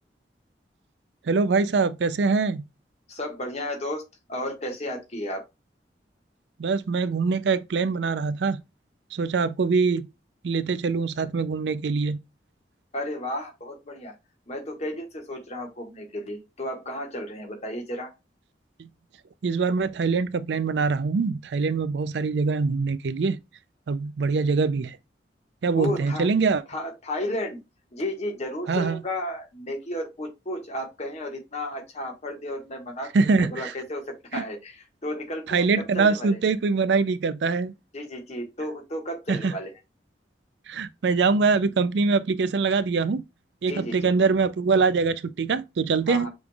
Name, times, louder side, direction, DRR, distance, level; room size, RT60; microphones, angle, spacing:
voice 1, 1.2-2.6 6.6-8.6 9.1-10.1 10.4-12.2 18.8-18.9 19.4-23.4 23.9-25.0 25.6-26.6 28.7-29.0 33.1-33.7 34.3-34.4 35.5-37.7 39.3-39.5 40.7-43.2 43.6-46.3, right 4 dB, 70° right, 0.4 m, -23 dB
voice 2, 3.1-4.0 4.3-5.4 12.9-14.1 14.5-18.1 25.8-26.3 26.7-27.6 27.9-36.4 37.9-39.7 43.7-44.1 46.1-46.3, left 1 dB, 40° left, 1.5 m, -33 dB
7.0 x 3.3 x 2.3 m
head